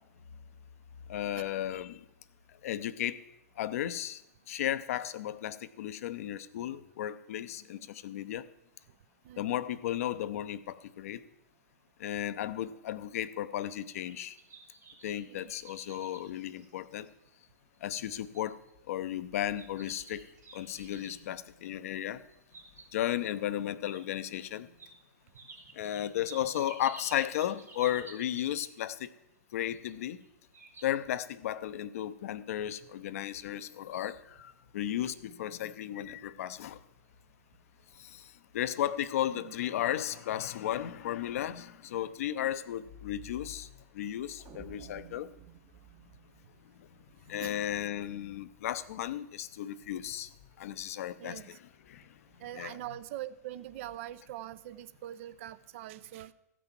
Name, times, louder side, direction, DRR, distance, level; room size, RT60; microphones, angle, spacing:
voice 1, 1.1-2.0 2.6-3.2 3.6-4.2 4.5-8.4 9.4-11.2 12.0-14.4 15.0-17.1 17.8-18.6 18.9-20.3 20.5-22.2 22.9-24.7 25.8-29.1 29.5-30.2 30.8-36.8 38.0-38.3 38.5-43.7 43.9-45.3 47.3-50.3 50.6-51.6 51.9-52.0 52.5-52.8, left 11 dB, 60° left, 14 dB, 0.7 m, -34 dB
voice 2, 9.2-9.6 15.3-15.5 39.3-39.5 47.4-47.5 51.2-51.6 52.4-56.3, right 13 dB, 50° right, 15 dB, 0.6 m, -43 dB
sound 1, 13.7-17.2 17.7-17.8 18.3-18.7 19.6-21.2 22.2-23.2 23.9-24.0 24.8-24.9 25.3-28.8 29.8-30.3 30.5-30.8, right 3 dB, 85° right, 3.5 m, -51 dB
sound 2, 44.4-47.5, right 9 dB, 30° right, 1.1 m, -54 dB
15.0 x 6.1 x 7.4 m, 0.87 s
figure-of-eight pair, 105°, 9 cm